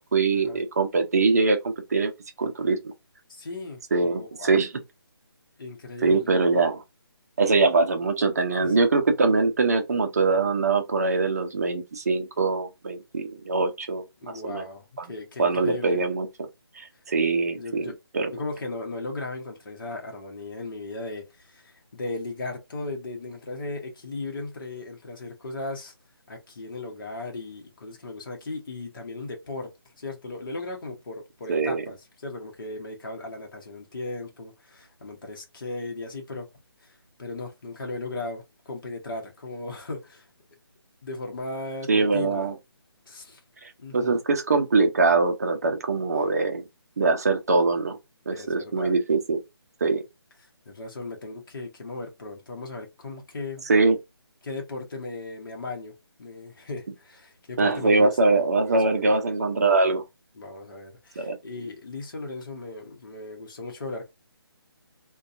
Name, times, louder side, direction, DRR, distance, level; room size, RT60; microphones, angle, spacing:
voice 1, 0.0-2.1 2.4-2.8 3.9-4.7 6.0-6.8 7.4-14.0 14.4-14.6 15.0-15.1 15.4-16.3 16.8-18.3 31.5-31.8 41.9-42.5 43.9-46.6 47.0-48.0 48.3-49.4 49.8-50.0 53.7-54.0 57.6-60.0 61.2-61.4, right 3 dB, 40° right, 0.5 m, -23 dB
voice 2, 3.3-3.8 4.2-4.6 5.6-6.7 8.6-8.8 14.2-16.0 17.6-17.9 18.3-25.9 26.3-29.7 30.0-36.5 36.8-40.3 41.0-42.5 43.1-43.4 43.8-44.2 48.3-48.9 50.7-53.7 54.4-55.9 56.2-59.1 60.3-64.1, left 2 dB, 55° left, 0.9 m, -37 dB
2.6 x 2.2 x 2.4 m
hypercardioid pair, 170°, 13 cm